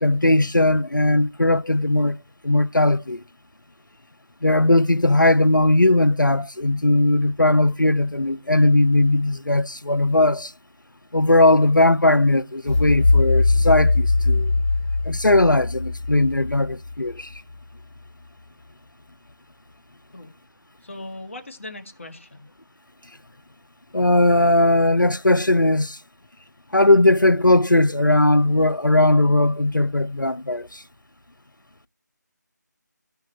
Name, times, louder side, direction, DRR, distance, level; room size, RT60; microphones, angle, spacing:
voice 1, 0.0-2.2 2.4-3.2 4.4-10.5 11.1-14.5 15.1-17.3 23.9-26.0 26.7-30.8, left 2 dB, 90° left, 0.8 m, -18 dB
sound 1, 12.7-17.5, left 3 dB, 25° left, 3.0 m, -21 dB
voice 2, 20.8-22.5, left 2 dB, 40° left, 2.0 m, -38 dB
14.5 x 5.7 x 4.3 m
figure-of-eight pair, 165°, 10 cm